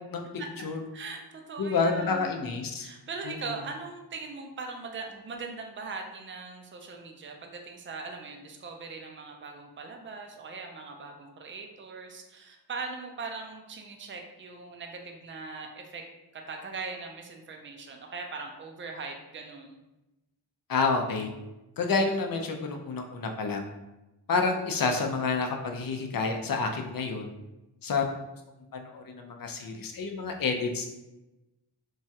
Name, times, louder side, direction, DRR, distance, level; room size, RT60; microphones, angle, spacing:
voice 1, 0.9-2.5 2.8-16.0 16.3-19.8, right 4 dB, 30° right, 3 dB, 0.4 m, -40 dB
voice 2, 1.6-2.9 3.2-3.3 20.7-21.3 21.8-23.6 24.3-27.3 27.8-28.0 28.7-30.9, left 4 dB, 55° left, 4 dB, 0.5 m, -29 dB
3.0 x 2.3 x 2.7 m, 1.0 s
cardioid pair, 45°, 42 cm